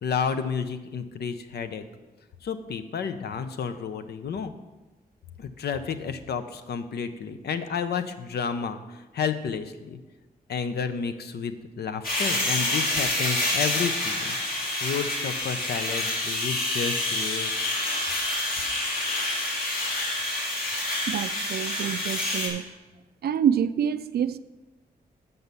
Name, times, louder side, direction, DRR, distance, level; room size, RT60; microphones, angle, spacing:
voice 1, 0.0-1.8 2.4-4.5 5.4-10.0 10.5-17.5, left 6 dB, 80° left, 9 dB, 0.7 m, -31 dB
sound 1, 12.0-22.5, left 1 dB, 65° left, 2.6 m, -27 dB
voice 2, 21.1-22.6 23.2-24.4, right 8 dB, 75° right, 15 dB, 0.4 m, -26 dB
7.8 x 5.4 x 7.0 m, 1.2 s
cardioid pair, 90°, 17 cm